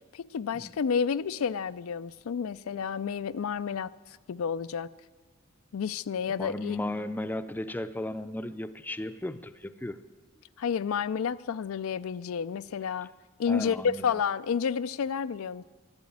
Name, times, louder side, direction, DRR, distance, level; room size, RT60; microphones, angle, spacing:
voice 1, 0.1-3.9 4.3-4.9 5.7-6.8 10.6-13.1 13.4-15.6, left 6 dB, 80° left, 15 dB, 0.4 m, -30 dB
voice 2, 6.4-10.0 13.5-14.0, left 1 dB, 10° left, 11 dB, 0.5 m, -35 dB
12.5 x 11.5 x 9.6 m, 1.5 s
head